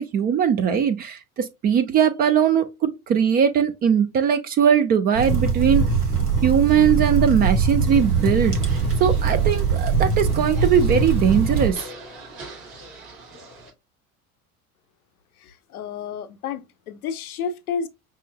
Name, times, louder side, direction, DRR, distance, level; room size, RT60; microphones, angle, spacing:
voice 1, 0.0-5.9 6.4-8.6 9.0-11.9, right 8 dB, 20° right, 0.4 m, -20 dB
sound 1, 5.1-11.7, right 5 dB, 85° right, 1.1 m, -22 dB
sound 2, 7.9-13.7, right 2 dB, 50° right, 2.6 m, -42 dB
voice 2, 15.4-17.9, left 6 dB, 75° left, 0.6 m, -31 dB
5.4 x 3.0 x 2.2 m
figure-of-eight pair, 70°, 45 cm